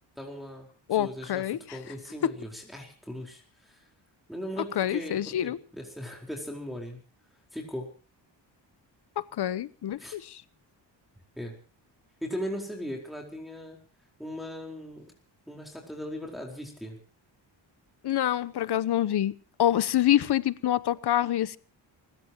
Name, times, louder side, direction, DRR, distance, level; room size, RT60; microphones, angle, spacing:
voice 1, 0.2-0.7 1.0-1.4 1.7-3.8 4.3-7.0 7.5-7.9 10.0-10.2 11.4-11.5 12.2-13.8 14.2-15.1 15.5-17.0, equal, ahead, 4.5 m, -38 dB
voice 2, 0.9-1.8 4.8-5.6 9.2-10.4 18.0-19.3 19.6-21.6, left 12 dB, 60° left, 0.9 m, -26 dB
29.0 x 16.5 x 3.0 m
cardioid pair, 110°, 45 cm